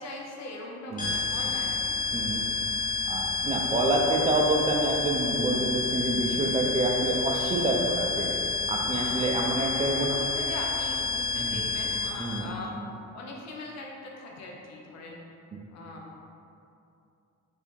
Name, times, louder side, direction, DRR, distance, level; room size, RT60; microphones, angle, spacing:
voice 1, 0.0-1.9 8.9-12.8 13.1-15.2 15.7-16.0, left 2 dB, 60° left, -1 dB, 0.6 m, -40 dB
voice 2, 0.9-1.2 2.1-2.5 3.1-8.3 8.7-10.1 11.4-11.7 12.2-12.5, right 2 dB, 20° right, 0 dB, 0.4 m, -27 dB
sound 1, 1.0-12.4, left 4 dB, 25° left, 0.9 m, -29 dB
2.7 x 2.6 x 3.6 m, 2.6 s
cardioid pair, 90°, 30 cm